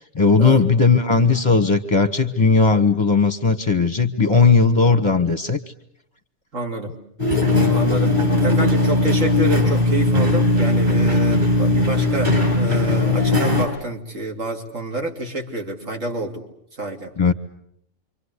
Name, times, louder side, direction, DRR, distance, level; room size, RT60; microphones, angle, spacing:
voice 1, 0.1-5.6 17.2-17.3, left 4 dB, 20° left, 10 dB, 1.1 m, -17 dB
voice 2, 6.5-6.9 7.7-16.4 16.8-17.1, right 2 dB, 65° right, 2 dB, 3.3 m, -28 dB
sound 1, 7.2-13.7, left 2 dB, 35° right, 7.1 m, -18 dB
28.0 x 25.0 x 8.3 m, 0.70 s
omnidirectional pair, 1.4 m